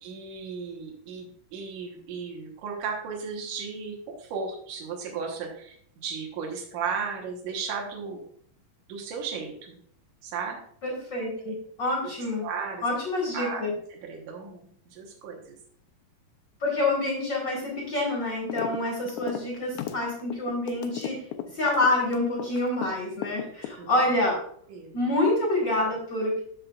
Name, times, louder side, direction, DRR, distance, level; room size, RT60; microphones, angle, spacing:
voice 1, 0.0-8.2 8.9-9.8 10.2-10.6 11.5-11.6 12.4-12.8 13.3-13.6 13.9-15.6 23.8-24.0 24.7-24.9, right 5 dB, 75° right, -1 dB, 2.7 m, -35 dB
voice 2, 10.8-12.4 12.8-13.7 16.6-21.2 21.5-24.4 24.9-26.4, left 2 dB, 40° left, -3 dB, 2.0 m, -27 dB
sound 1, 18.5-18.8 19.1-22.9 23.2-24.1, left 11 dB, 80° left, 1.9 m, -34 dB
13.5 x 5.2 x 2.4 m, 0.63 s
omnidirectional pair, 3.8 m